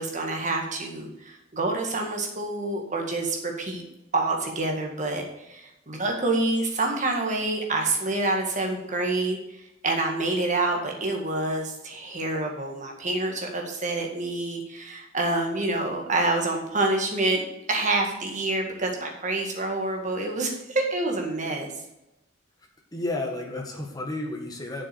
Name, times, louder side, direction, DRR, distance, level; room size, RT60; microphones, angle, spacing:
voice 1, 0.0-3.8 4.1-17.4 17.7-21.7, right 2 dB, 35° right, 2 dB, 1.8 m, -27 dB
voice 2, 22.9-24.8, left 2 dB, 20° left, 1 dB, 1.6 m, -31 dB
7.3 x 6.6 x 7.0 m, 0.91 s
head